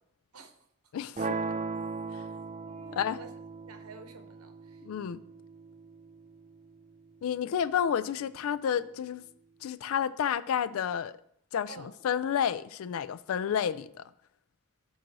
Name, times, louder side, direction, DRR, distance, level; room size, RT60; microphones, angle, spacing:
voice 1, 0.9-1.3 2.9-3.2 4.8-5.2 7.2-9.2 9.6-11.1 11.5-14.0, left 8 dB, 70° left, 0.3 m, -30 dB
sound 1, 1.2-7.2, right 4 dB, 30° right, 0.3 m, -38 dB
voice 2, 2.4-3.3 3.7-4.8 11.7-11.9, right 3 dB, 85° right, 0.8 m, -50 dB
7.5 x 2.7 x 5.9 m
head